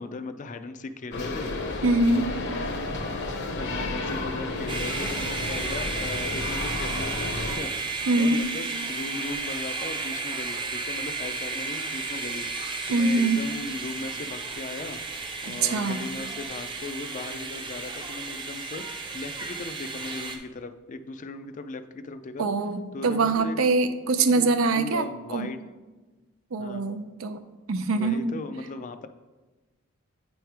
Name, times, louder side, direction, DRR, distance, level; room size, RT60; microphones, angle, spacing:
voice 1, 0.0-1.5 2.1-2.3 3.2-15.0 15.4-22.5 22.9-23.6 24.1-25.7 26.6-26.9 27.9-29.1, left 3 dB, 40° left, 10 dB, 0.4 m, -38 dB
sound 1, 1.1-7.6, left 2 dB, 60° left, 0.8 m, -32 dB
voice 2, 1.8-2.3 8.1-8.4 12.9-13.4 15.4-16.0 22.4-25.1 25.3-25.5 26.5-27.4 27.7-28.3, right 3 dB, 85° right, 9 dB, 0.5 m, -24 dB
sound 2, 4.7-20.4, right 4 dB, 25° right, 0.6 m, -33 dB
8.8 x 3.2 x 4.6 m, 1.2 s
head